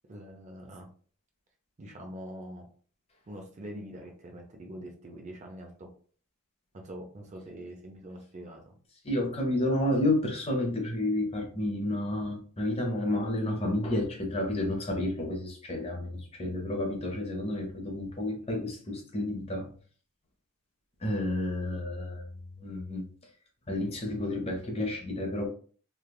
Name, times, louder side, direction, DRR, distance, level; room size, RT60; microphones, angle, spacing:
voice 1, 0.1-0.9 1.8-2.7 3.3-5.9 6.7-8.7, right 1 dB, 30° right, 2 dB, 0.4 m, -44 dB
voice 2, 9.0-19.7 21.0-22.3 22.6-23.0 23.7-25.5, left 1 dB, 25° left, 1 dB, 0.6 m, -30 dB
3.2 x 2.3 x 2.2 m, 0.44 s
head